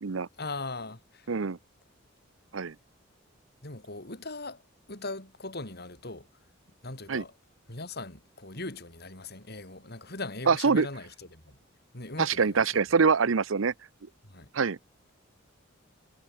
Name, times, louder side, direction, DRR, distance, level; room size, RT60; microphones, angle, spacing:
voice 1, 0.4-1.5 3.6-4.6 4.9-6.3 6.8-7.3 7.7-11.6 11.9-12.8 14.2-14.5, left 2 dB, 55° left, 4.8 m, -40 dB
voice 2, 1.3-1.6 2.5-2.7 7.1-7.2 10.5-10.9 12.2-13.7 14.5-14.8, right 5 dB, 80° right, 0.7 m, -24 dB
head